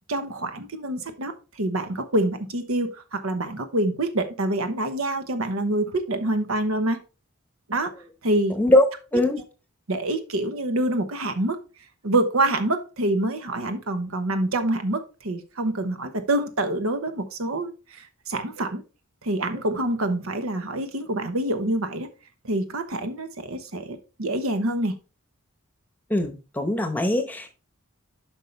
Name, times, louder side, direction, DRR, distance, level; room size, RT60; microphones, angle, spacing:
voice 1, 0.1-1.3 1.6-7.0 7.7-7.9 8.2-8.5 9.9-11.6 12.0-18.8 19.2-22.1 22.4-24.9, right 1 dB, 80° right, 1.0 m, -26 dB
voice 2, 26.1-27.5, left 1 dB, 10° left, 0.9 m, -21 dB
8.2 x 5.5 x 3.3 m
head